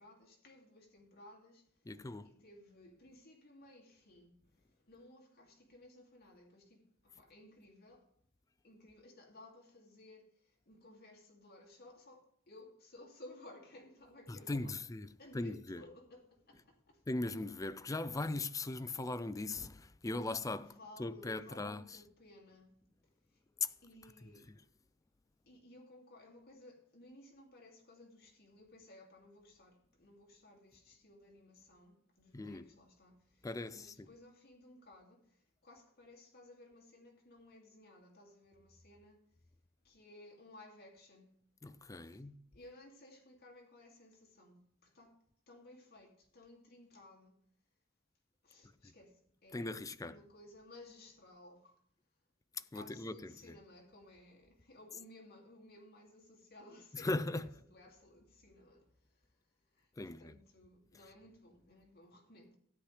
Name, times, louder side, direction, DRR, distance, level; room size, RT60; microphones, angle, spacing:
voice 1, 0.0-1.7 2.0-4.3 4.9-8.1 8.6-10.3 10.7-14.8 15.2-17.0 20.6-22.7 23.8-24.5 25.5-35.2 35.6-39.2 39.8-41.3 42.1-42.2 42.5-45.2 45.5-47.4 48.4-51.8 52.7-58.9 59.7-59.9 60.2-62.6, left 1 dB, 50° left, 2.5 m, -58 dB
voice 2, 1.9-2.3 14.3-15.9 16.5-16.6 17.1-22.0 23.6-23.7 24.5-24.6 32.3-32.7 33.4-34.1 41.6-42.4 48.8-48.9 49.5-50.2 52.5-53.6 56.9-57.5 60.0-60.4 60.9-61.1, left 2 dB, 15° left, 0.4 m, -39 dB
13.0 x 9.8 x 3.3 m
head